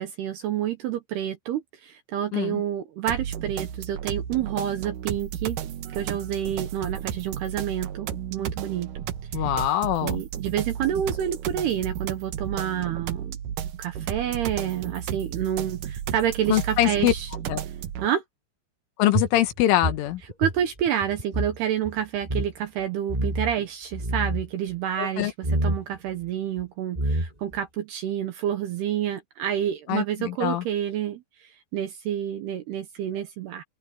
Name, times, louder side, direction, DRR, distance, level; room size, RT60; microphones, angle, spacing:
voice 1, 0.0-5.6 5.9-8.9 9.3-9.5 10.0-13.4 13.8-17.3 18.0-18.2 20.4-33.6, right 10 dB, 70° right, 2.6 m, -29 dB
sound 1, 3.1-18.1, right 9 dB, 90° right, 1.8 m, -33 dB
voice 2, 9.3-10.2 16.5-17.1 17.5-17.6 19.0-20.2 25.0-25.3 29.9-30.6, left 13 dB, 75° left, 3.7 m, -23 dB
sound 2, 19.1-21.6 21.8-21.9 22.2-22.5 23.1-23.6 23.9-24.5 25.4-25.8 26.6-26.7 26.9-27.6, right 1 dB, 10° right, 5.6 m, -27 dB
open air
omnidirectional pair, 5.8 m